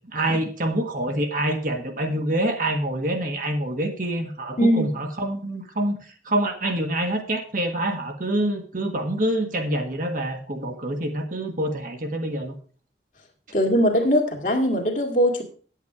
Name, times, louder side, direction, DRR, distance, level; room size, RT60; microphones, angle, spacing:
voice 1, 0.1-12.5, right 1 dB, 45° right, 4 dB, 1.6 m, -26 dB
voice 2, 13.5-15.4, equal, 45° left, 3 dB, 2.0 m, -20 dB
9.3 x 8.3 x 4.8 m, 0.42 s
head